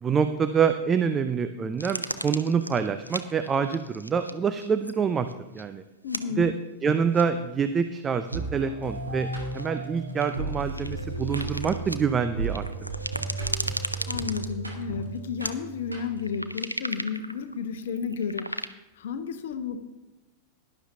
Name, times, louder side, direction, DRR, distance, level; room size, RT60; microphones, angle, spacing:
voice 1, 0.0-5.8 6.4-6.5 6.8-9.3 9.5-12.9, right 6 dB, 20° right, 9 dB, 0.5 m, -26 dB
sound 1, 1.8-4.3 4.6-5.0 5.3-5.6 6.1-6.2 7.1-7.5 8.3-8.4 9.2-12.0 12.4-14.8 15.4-15.5 16.0-18.7, equal, 90° left, 0.5 m, -36 dB
voice 2, 6.0-6.5 14.1-18.5 19.0-19.8, left 6 dB, 60° left, 10 dB, 1.0 m, -32 dB
sound 2, 8.3-16.4, right 3 dB, 85° right, 2.1 m, -34 dB
17.0 x 11.0 x 2.8 m, 0.99 s
figure-of-eight pair, 90°, 0 cm